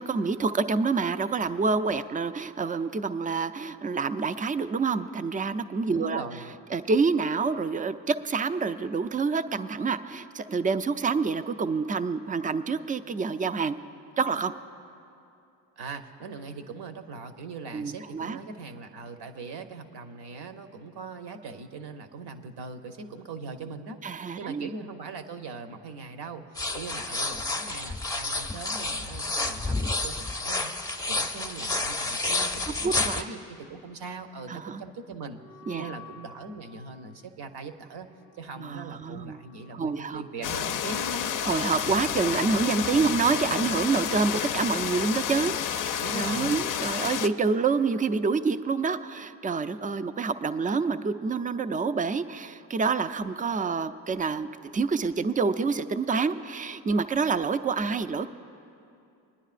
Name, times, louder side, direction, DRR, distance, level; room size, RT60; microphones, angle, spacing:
voice 1, 0.0-6.2 6.7-13.7 14.2-14.5 17.7-18.4 24.0-24.7 32.8-33.3 34.5-34.8 35.7-35.9 38.6-39.4 39.7-40.2 41.4-54.5 54.7-58.3, right 4 dB, 20° right, 12 dB, 0.4 m, -27 dB
voice 2, 5.9-6.5 15.8-24.0 24.4-35.4 35.7-38.1 38.3-41.3 46.0-46.6, right 4 dB, 65° right, 7 dB, 0.9 m, -40 dB
sound 1, 26.6-33.2, left 2 dB, 10° left, 0.7 m, -30 dB
Wind instrument woodwind instrument, 35.3-42.4, left 4 dB, 90° right, 1.5 m, -53 dB
sound 2, 40.4-47.3, left 9 dB, 50° left, 0.5 m, -30 dB
27.0 x 10.0 x 2.5 m, 2.6 s
supercardioid pair, 60°, 42 cm